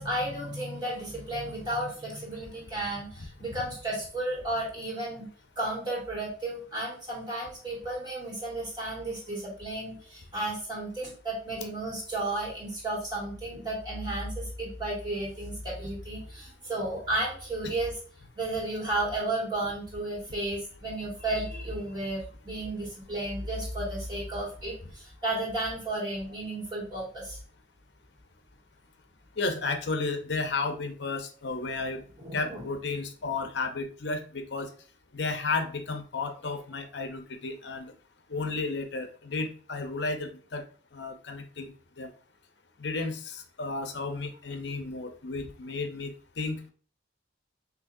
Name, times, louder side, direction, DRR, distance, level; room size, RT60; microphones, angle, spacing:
voice 1, 0.0-5.3 5.6-18.0 18.3-27.4 32.2-32.6, right 2 dB, 20° right, -5 dB, 2.1 m, -33 dB
voice 2, 29.4-32.0 32.3-34.7 35.1-37.9 38.3-40.6 40.9-41.7 42.0-42.1 42.8-46.7, left 3 dB, 60° left, 6 dB, 0.7 m, -33 dB
6.2 x 2.8 x 2.6 m, 0.42 s
head